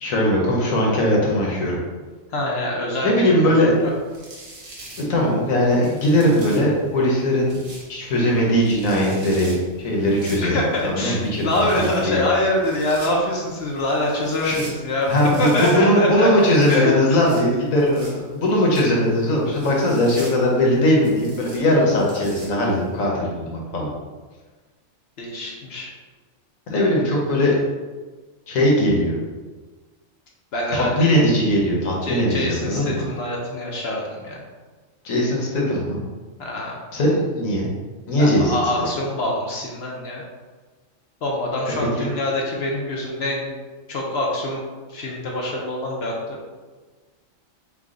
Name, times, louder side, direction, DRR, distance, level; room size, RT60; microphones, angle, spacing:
voice 1, 0.0-1.8 3.0-3.8 5.1-7.6 7.9-10.5 10.8-12.2 14.4-14.6 15.1-23.9 26.7-27.6 28.5-29.2 30.7-33.0 35.0-36.0 36.9-37.7 38.1-38.6 42.0-42.1, left 1 dB, 80° left, -3 dB, 1.4 m, -19 dB
voice 2, 2.3-3.8 10.4-16.3 16.7-16.9 18.3-18.4 25.2-25.9 30.5-31.1 32.0-34.4 36.4-36.8 38.2-40.2 41.2-43.5 43.9-44.6 44.9-46.4, left 1 dB, 55° left, -2 dB, 0.9 m, -25 dB
sound 1, 3.8-22.9, right 2 dB, 90° right, 1.5 m, -44 dB
4.7 x 2.3 x 3.7 m, 1.3 s
omnidirectional pair, 1.4 m